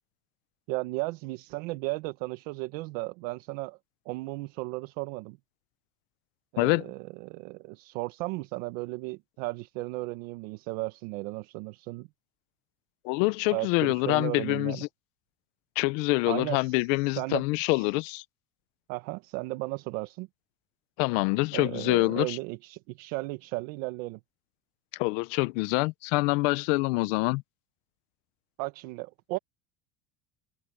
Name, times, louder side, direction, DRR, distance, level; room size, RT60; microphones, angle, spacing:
voice 1, 0.7-3.8 4.0-5.4 6.5-12.1 13.5-14.8 16.3-17.9 18.9-20.3 21.5-24.2 28.6-29.4, right 22 dB, 90° right, 1.1 m, -35 dB
voice 2, 13.0-14.8 15.8-18.2 21.0-22.4 25.0-27.4, left 24 dB, 90° left, 0.9 m, -26 dB
open air
cardioid pair, 160°, 37 cm